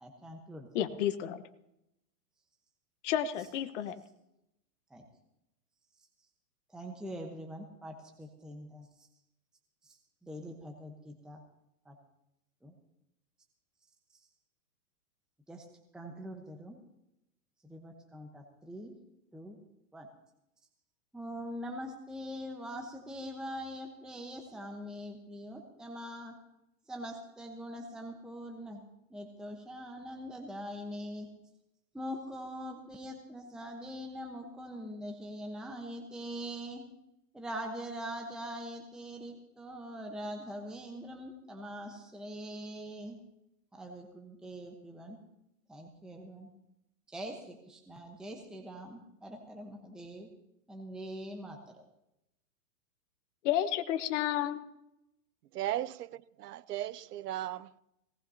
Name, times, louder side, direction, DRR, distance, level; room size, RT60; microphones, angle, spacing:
voice 1, 0.0-0.7 4.9-5.1 6.7-8.9 10.2-11.4 11.9-12.0 12.6-12.7 15.5-15.7 15.9-16.8 17.6-18.9 19.3-19.6 19.9-20.1 21.1-26.3 26.9-28.8 29.1-31.3 31.9-36.8 37.3-43.2 43.7-45.2 45.7-46.5 47.1-50.3 50.7-51.6, equal, ahead, 1.0 m, -43 dB
voice 2, 0.7-1.4 3.0-4.0 53.4-54.6, left 11 dB, 50° left, 1.3 m, -31 dB
voice 3, 55.5-57.8, right 13 dB, 75° right, 0.8 m, -37 dB
19.0 x 18.0 x 2.8 m
hypercardioid pair, 145°, 48 cm